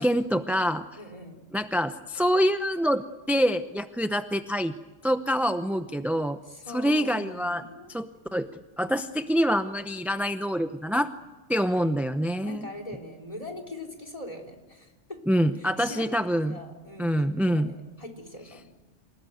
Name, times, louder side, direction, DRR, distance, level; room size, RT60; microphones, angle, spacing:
voice 1, 0.0-0.8 1.5-4.7 5.0-6.4 6.7-7.6 7.9-8.5 8.8-11.1 11.5-12.7 15.3-16.6 17.0-17.7, equal, ahead, 9 dB, 0.5 m, -26 dB
voice 2, 0.9-1.4 6.4-7.9 12.4-15.3 15.6-16.2 16.5-18.7, left 2 dB, 30° left, 6 dB, 3.6 m, -42 dB
27.5 x 19.0 x 9.3 m, 1.2 s
omnidirectional pair, 1.3 m